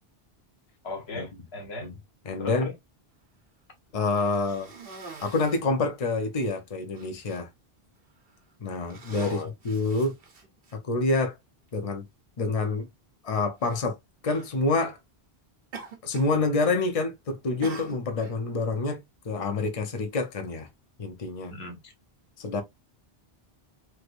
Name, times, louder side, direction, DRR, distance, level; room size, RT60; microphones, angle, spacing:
voice 1, 0.8-1.9 2.4-2.7 9.2-9.5 21.5-21.9, left 3 dB, 85° left, 1.4 m, -37 dB
voice 2, 2.2-2.7 3.9-4.7 5.2-7.5 8.6-10.2 10.7-11.4 11.7-12.1 12.4-12.9 13.2-14.0 14.2-15.0 16.0-20.7 21.0-21.6 22.4-22.6, left 3 dB, 40° left, 0.8 m, -27 dB
Cough, 4.1-5.7 6.4-6.5 6.9-7.4 8.2-8.4 8.8-10.7 11.7-11.8 13.6-13.8 14.2-14.5 15.7-16.4 16.7-17.1 17.6-18.4, right 4 dB, 65° right, 1.1 m, -44 dB
3.2 x 3.1 x 2.4 m
omnidirectional pair, 1.0 m